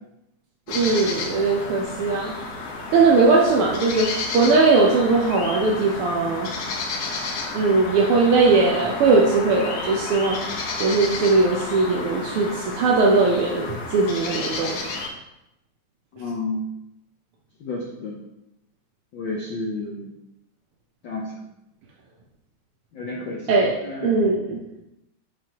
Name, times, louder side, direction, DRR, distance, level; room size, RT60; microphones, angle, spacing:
sound 1, 0.7-15.1, left 3 dB, 60° left, 2.1 m, -31 dB
voice 1, 0.7-2.3 2.9-6.5 7.5-10.4 10.8-14.8 23.5-23.8 24.0-24.6, right 3 dB, 70° right, -2 dB, 1.3 m, -19 dB
voice 2, 16.1-16.6 17.6-18.2 19.1-20.1 21.0-21.3 22.9-24.2, left 3 dB, 85° left, -1 dB, 1.0 m, -31 dB
10.5 x 5.1 x 3.0 m, 0.87 s
omnidirectional pair, 3.5 m